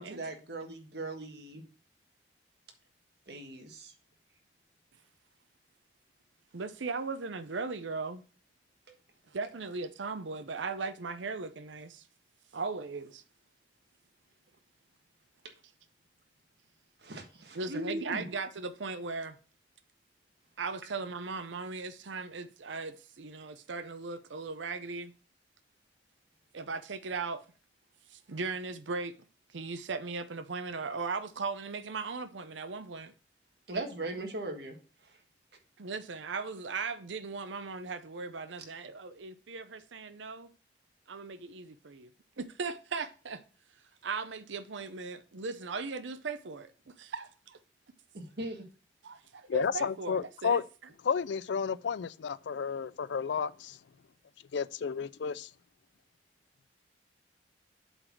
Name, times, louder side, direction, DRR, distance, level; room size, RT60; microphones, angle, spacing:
voice 1, 0.0-1.6 3.3-3.9 17.0-18.3 33.7-34.8 35.0-35.2 48.1-48.6, right 2 dB, 65° right, 1.5 m, -39 dB
voice 2, 6.5-8.2 9.3-12.0 12.5-13.2 17.5-19.4 20.6-25.1 26.5-27.4 28.1-29.1 29.5-33.1 35.8-40.5 41.1-42.1 42.4-43.4 44.0-46.7 47.0-47.6 49.0-50.6, right 4 dB, 90° right, 0.7 m, -38 dB
voice 3, 49.5-50.6 51.0-53.8 54.5-55.5, left 6 dB, 75° left, 0.4 m, -32 dB
7.8 x 4.0 x 6.1 m
head